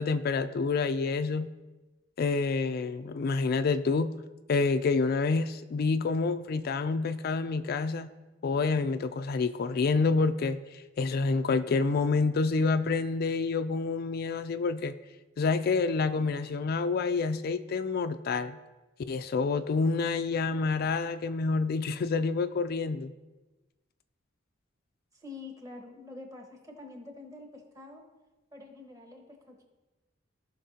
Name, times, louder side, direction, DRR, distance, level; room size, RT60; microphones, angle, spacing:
voice 1, 0.0-1.5 2.2-4.1 4.5-8.1 8.4-15.0 15.4-18.6 19.1-23.1, left 4 dB, 55° left, 10 dB, 0.3 m, -28 dB
voice 2, 25.1-28.0 28.5-29.6, left 3 dB, 20° right, 2 dB, 1.3 m, -46 dB
16.5 x 5.9 x 2.8 m, 1.2 s
head